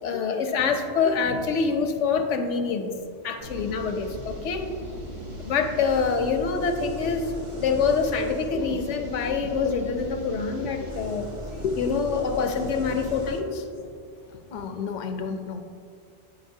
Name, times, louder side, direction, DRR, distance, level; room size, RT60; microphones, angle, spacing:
voice 1, 0.0-2.9 3.2-4.6 5.3-7.3 7.6-11.3 11.8-13.6, left 5 dB, 90° left, 6 dB, 1.0 m, -26 dB
sound 1, 3.4-13.4, left 1 dB, 30° right, 0.7 m, -37 dB
voice 2, 11.6-12.0 14.5-15.6, left 5 dB, 60° left, 6 dB, 0.5 m, -31 dB
8.6 x 5.3 x 2.7 m, 2.3 s
omnidirectional pair, 1.2 m